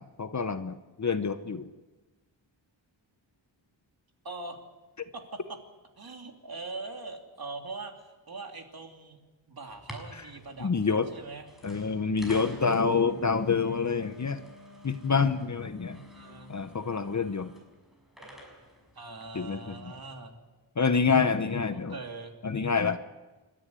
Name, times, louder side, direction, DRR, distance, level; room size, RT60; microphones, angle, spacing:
voice 1, 0.0-1.7 10.6-11.1 11.6-14.4 14.8-16.0 16.5-17.5 19.3-19.9 20.8-21.9 22.4-23.0, left 5 dB, 35° left, 10 dB, 0.9 m, -27 dB
voice 2, 4.2-4.6 5.1-5.4 6.0-9.2 9.5-11.5 15.8-16.6 18.9-20.4 21.9-22.4, right 3 dB, 50° right, 3 dB, 3.0 m, -42 dB
sound 1, 9.7-20.0, left 1 dB, ahead, 6.2 m, -50 dB
29.5 x 13.0 x 9.7 m, 1.2 s
wide cardioid pair, 140°, 47 cm